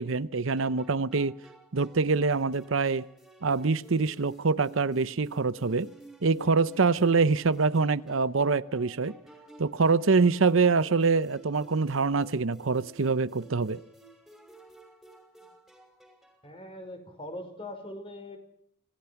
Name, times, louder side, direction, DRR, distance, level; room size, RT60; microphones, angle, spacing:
voice 1, 0.0-1.4 1.7-3.0 3.4-5.9 6.2-9.2 9.6-13.8, right 4 dB, 70° right, 0.8 m, -25 dB
sound 1, 0.6-16.5, right 2 dB, ahead, 5.6 m, -53 dB
voice 2, 16.4-18.4, left 1 dB, 25° left, 5.2 m, -41 dB
26.5 x 19.0 x 5.9 m
head